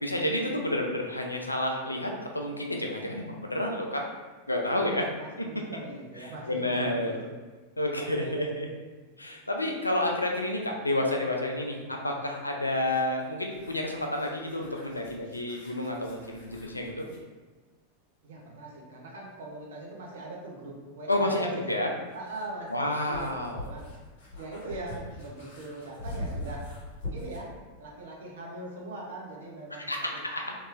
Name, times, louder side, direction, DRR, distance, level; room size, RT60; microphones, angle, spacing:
voice 1, 0.0-4.0 4.5-5.1 5.4-5.5 6.5-7.1 7.8-8.7 9.2-17.0 21.1-21.9 22.7-23.7 29.7-30.0 30.2-30.6, left 1 dB, 85° left, 1 dB, 0.4 m, -30 dB
voice 2, 4.8-6.7 7.0-7.2 8.0-8.5 18.2-21.7 22.1-23.8 24.4-26.6 27.1-27.5 27.8-30.2, right 2 dB, 60° right, -2 dB, 0.7 m, -41 dB
sound 1, 12.7-17.3 19.6-19.7 21.7-27.5, left 1 dB, 55° left, 0.9 m, -42 dB
2.9 x 2.8 x 2.4 m, 1.3 s
figure-of-eight pair, 90°, 0 cm